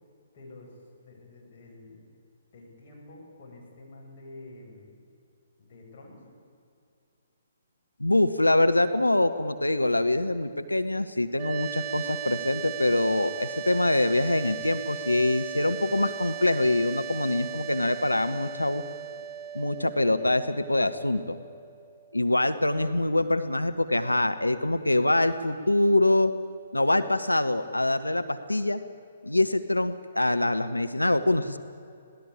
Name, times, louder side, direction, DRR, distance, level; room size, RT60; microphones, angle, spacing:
voice 1, 0.3-2.0 2.5-5.0 5.6-6.2, left 2 dB, 40° left, -2 dB, 7.8 m, -48 dB
voice 2, 8.0-18.8 19.5-21.4 22.1-26.3 26.7-28.8 29.2-31.6, left 2 dB, 85° left, 10 dB, 1.0 m, -24 dB
sound 1, 11.3-22.4, right 9 dB, 25° right, 0.6 m, -38 dB
26.0 x 18.5 x 8.8 m, 2.5 s
figure-of-eight pair, 130°, 0 cm